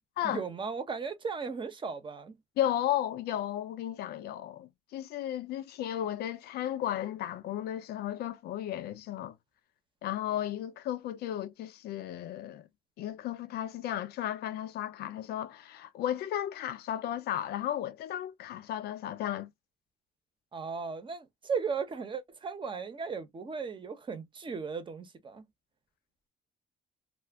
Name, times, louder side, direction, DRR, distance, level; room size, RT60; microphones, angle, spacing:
voice 1, 0.3-2.4 20.5-25.4, right 5 dB, 30° right, 0.8 m, -36 dB
voice 2, 2.6-9.3 10.0-12.6 13.0-19.5, left 11 dB, 70° left, 0.5 m, -34 dB
2.4 x 2.3 x 3.4 m
cardioid pair, 110°, 17 cm